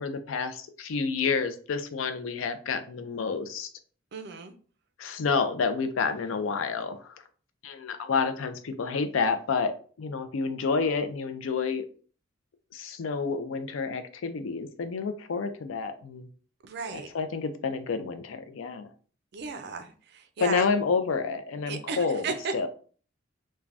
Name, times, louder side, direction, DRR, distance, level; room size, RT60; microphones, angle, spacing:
voice 1, 0.0-3.7 5.0-7.2 7.6-11.9 12.7-16.3 16.9-18.9 20.4-22.3 22.5-22.7, left 5 dB, 85° left, 9 dB, 0.4 m, -29 dB
voice 2, 4.1-4.5 16.6-17.1 19.3-20.7 21.7-22.5, right 4 dB, 55° right, 8 dB, 0.4 m, -35 dB
3.3 x 2.2 x 2.5 m, 0.42 s
head